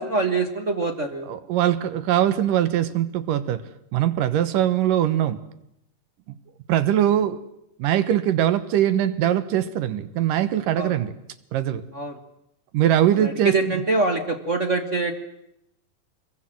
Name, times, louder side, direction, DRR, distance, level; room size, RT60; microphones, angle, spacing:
voice 1, 0.0-1.3 10.7-10.9 11.9-12.1 13.1-15.1, right 3 dB, 35° right, 5 dB, 1.1 m, -24 dB
voice 2, 1.3-3.6 3.9-5.4 6.3-6.4 6.7-7.4 7.8-11.1 11.5-11.8 12.7-13.8, right 11 dB, 85° right, 13 dB, 2.8 m, -22 dB
24.5 x 22.0 x 7.7 m, 0.80 s
omnidirectional pair, 3.7 m